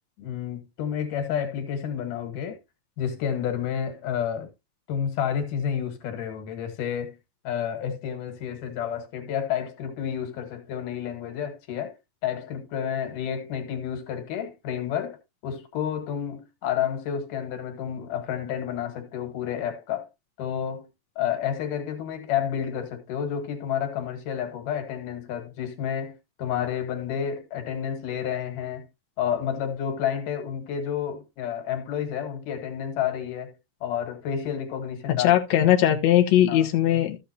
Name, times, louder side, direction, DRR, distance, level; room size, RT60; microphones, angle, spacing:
voice 1, 0.2-2.6 3.0-4.5 4.9-7.2 7.4-11.9 12.2-20.1 20.4-20.9 21.2-28.9 29.2-33.5 33.8-35.7 36.5-36.7, left 8 dB, 90° left, 3.2 m, -30 dB
voice 2, 35.2-37.2, left 12 dB, 65° left, 2.1 m, -19 dB
14.0 x 6.9 x 2.8 m
omnidirectional pair, 3.6 m